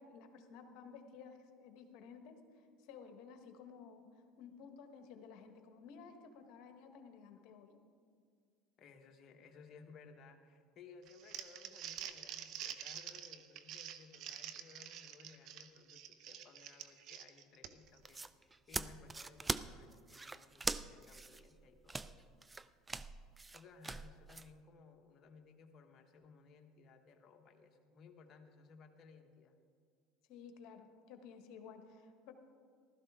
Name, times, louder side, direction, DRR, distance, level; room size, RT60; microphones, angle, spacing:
voice 1, 0.0-4.1 4.4-7.8 30.3-32.3, left 6 dB, 65° left, 6 dB, 1.2 m, -54 dB
voice 2, 8.8-22.2 23.5-29.6, left 5 dB, 45° left, 4 dB, 1.3 m, -60 dB
Crumpling crinkling, 11.1-18.0, right 10 dB, 60° right, 0.7 m, -48 dB
sound 1, 17.9-24.5, right 3 dB, 15° right, 0.4 m, -42 dB
15.5 x 12.5 x 3.6 m, 2.1 s
supercardioid pair, 100°, 0 cm